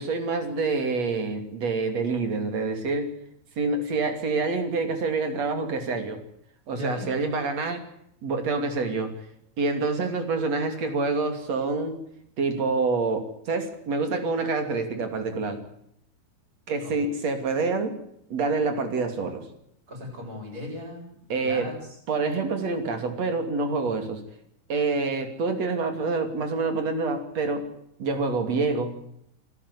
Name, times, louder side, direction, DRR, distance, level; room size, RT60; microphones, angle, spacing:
voice 1, 0.0-3.1 3.6-6.2 6.7-7.8 8.2-9.1 9.6-12.0 12.4-15.6 16.7-18.0 18.3-19.4 21.3-21.7 22.1-24.2 24.7-27.7 28.0-28.9, right 3 dB, 45° right, 7 dB, 3.7 m, -27 dB
voice 2, 6.7-7.1 16.8-16.9 19.9-21.1 21.4-21.7, left 1 dB, 20° right, 1 dB, 8.4 m, -37 dB
28.5 x 12.5 x 9.7 m, 0.74 s
omnidirectional pair, 4.5 m